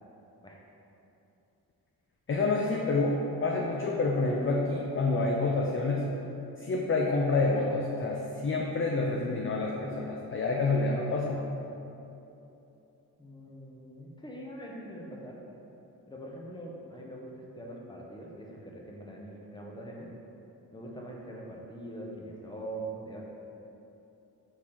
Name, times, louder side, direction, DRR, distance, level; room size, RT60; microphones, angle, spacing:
voice 1, 2.3-6.1 6.6-11.5, left 3 dB, 30° left, -1 dB, 0.4 m, -28 dB
voice 2, 13.2-15.4 16.1-20.1 20.7-23.2, right 1 dB, 10° left, -2 dB, 0.8 m, -43 dB
4.6 x 2.8 x 3.6 m, 2.9 s
cardioid pair, 50°, 40 cm